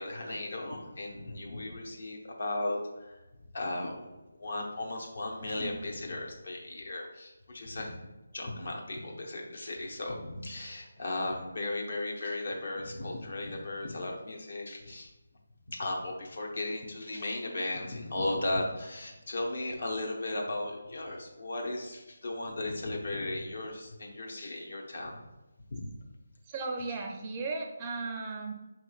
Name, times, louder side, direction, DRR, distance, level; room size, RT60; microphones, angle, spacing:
voice 1, 0.0-3.2 3.5-4.0 4.4-7.9 8.3-15.1 15.7-25.1 25.7-25.9, left 2 dB, 60° left, 0 dB, 0.8 m, -36 dB
voice 2, 26.5-28.5, right 3 dB, 20° right, 2 dB, 0.4 m, -36 dB
5.3 x 3.0 x 2.4 m, 1.1 s
figure-of-eight pair, 160°, 0 cm